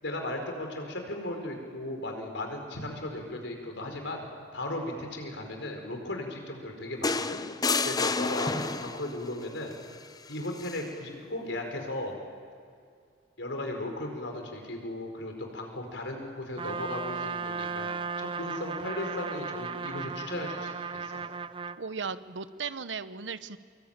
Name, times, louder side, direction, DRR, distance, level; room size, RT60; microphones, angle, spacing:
voice 1, 0.0-4.2 4.5-7.4 7.8-8.5 8.8-9.7 10.3-12.2 13.4-17.9 18.2-21.2, left 1 dB, 80° left, 3 dB, 4.8 m, -36 dB
Drum, 2.7-5.1, equal, 50° right, 2.3 m, -55 dB
sound 1, 7.0-9.2 10.6-10.8, left 4 dB, 20° left, 0.7 m, -29 dB
Trumpet, 16.6-21.8, right 5 dB, 30° right, 0.6 m, -35 dB
voice 2, 21.8-23.6, right 5 dB, 85° right, 13 dB, 1.0 m, -36 dB
25.5 x 22.5 x 9.0 m, 2.3 s
head